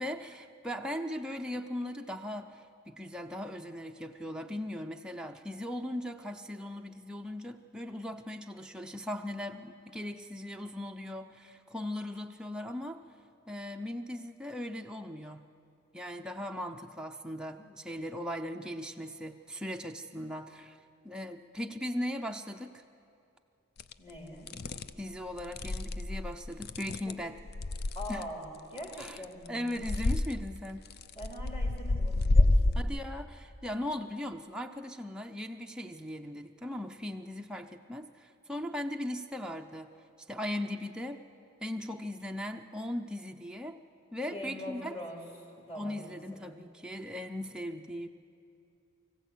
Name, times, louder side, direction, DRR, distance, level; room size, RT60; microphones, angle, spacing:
voice 1, 0.0-13.0 13.5-15.5 15.9-22.8 25.0-27.4 28.1-28.3 29.0-29.2 29.5-30.9 32.8-39.9 40.3-41.2 41.6-43.8 44.1-45.0 45.7-48.1, left 1 dB, 5° right, 2 dB, 0.5 m, -38 dB
sound 1, 23.8-23.9 24.5-24.9 25.4-28.2 28.8-29.5 29.8-30.3 30.9-32.8, left 2 dB, 50° left, 0.5 m, -28 dB
voice 2, 24.0-24.5 27.0-27.1 27.9-29.6 31.1-32.8 44.3-46.6, equal, 30° left, 0 dB, 3.3 m, -43 dB
24.0 x 15.5 x 8.4 m, 2.6 s
head